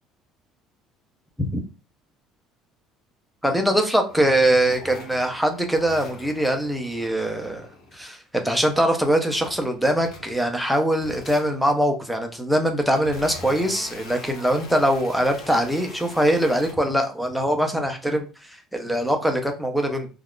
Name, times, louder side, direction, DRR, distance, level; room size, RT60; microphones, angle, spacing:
voice 1, 3.4-7.7 7.9-20.1, right 1 dB, ahead, 3 dB, 0.4 m, -22 dB
sound 1, 4.1-8.2 8.6-10.6 10.9-11.8 12.4-16.7, left 3 dB, 50° left, 0.9 m, -43 dB
2.3 x 2.3 x 3.5 m, 0.33 s
cardioid pair, 165°, 0 cm